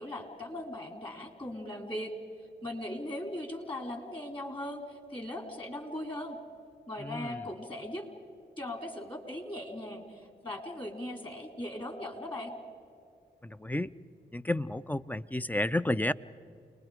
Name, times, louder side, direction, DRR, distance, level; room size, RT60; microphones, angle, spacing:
voice 1, 0.0-2.1 2.6-6.4 6.9-8.1 8.6-12.5, left 1 dB, 25° left, 5 dB, 4.0 m, -39 dB
voice 2, 7.0-7.5 13.4-13.9 14.3-16.1, left 1 dB, 10° left, 14 dB, 0.6 m, -31 dB
29.5 x 20.5 x 5.1 m, 2.3 s
supercardioid pair, 40°, 20 cm